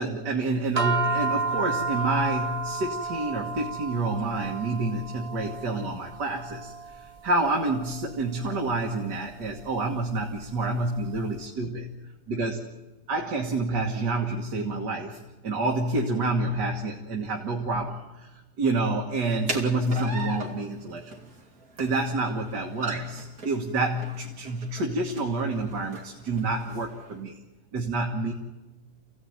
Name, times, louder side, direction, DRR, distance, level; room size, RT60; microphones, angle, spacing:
voice 1, 0.0-11.9 12.3-12.6 13.1-21.2 21.8-27.4 27.7-28.3, right 2 dB, 85° right, 1 dB, 2.3 m, -28 dB
sound 1, 0.8-11.2, right 4 dB, 35° right, 0.6 m, -33 dB
sound 2, 19.2-27.1, right 3 dB, 65° right, 3.6 m, -39 dB
27.5 x 16.5 x 9.5 m, 1.1 s
omnidirectional pair, 1.8 m